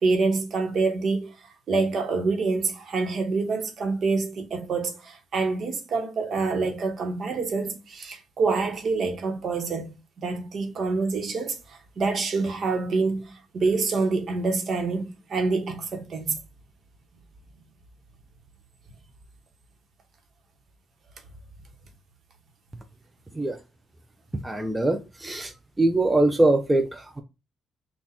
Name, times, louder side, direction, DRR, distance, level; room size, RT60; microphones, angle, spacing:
voice 1, 0.0-16.4, right 4 dB, 55° right, 1.1 m, -26 dB
voice 2, 24.4-25.5 25.8-27.2, right 2 dB, 10° right, 0.5 m, -22 dB
4.0 x 2.4 x 4.1 m
cardioid pair, 105°, 0 cm